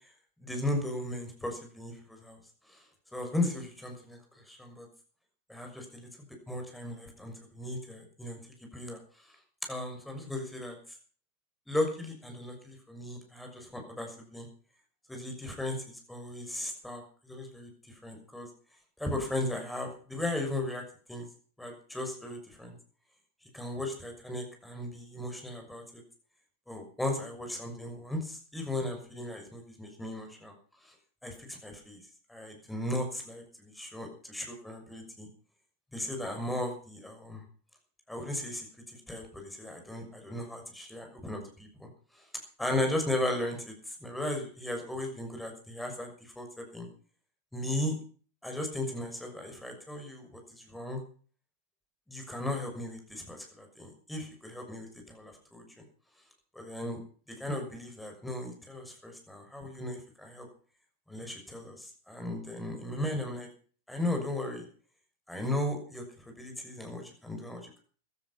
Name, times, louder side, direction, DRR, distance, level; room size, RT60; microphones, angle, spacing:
voice 1, 0.4-2.4 2.7-2.8 3.1-4.2 4.5-4.9 5.5-8.4 8.7-9.0 9.7-10.8 11.7-14.5 15.1-18.5 19.0-20.8 21.1-21.3 21.6-22.7 23.5-26.0 26.7-30.5 30.8-30.9 31.2-32.0 32.3-35.3 35.9-37.4 38.1-41.9 42.1-42.3 42.6-46.9 47.5-47.9 48.4-51.0 52.1-55.8 56.5-57.0 57.3-60.5 61.1-63.5 63.9-64.6 65.3-67.8, left 1 dB, 5° left, 3 dB, 6.4 m, -36 dB
16.0 x 13.0 x 5.8 m, 0.43 s
figure-of-eight pair, 90°, 0 cm